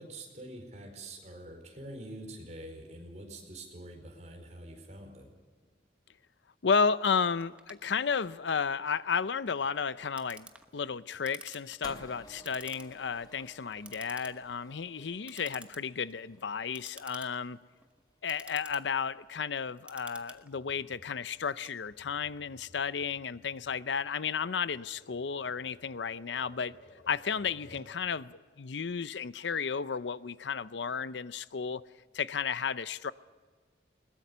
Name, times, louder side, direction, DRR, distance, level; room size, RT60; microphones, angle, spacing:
voice 1, 0.0-5.3, right 1 dB, 40° right, 3 dB, 4.6 m, -45 dB
voice 2, 6.6-17.6 18.2-26.8 27.1-31.8 32.1-33.1, left 6 dB, 80° left, 16 dB, 0.6 m, -33 dB
Clock, 7.4-22.3, right 2 dB, 5° right, 1.0 m, -53 dB
sound 1, 11.8-18.2, left 1 dB, 25° left, 2.3 m, -54 dB
Tap, 20.5-28.0, left 1 dB, 65° left, 3.5 m, -58 dB
21.0 x 20.5 x 6.8 m, 1.5 s
head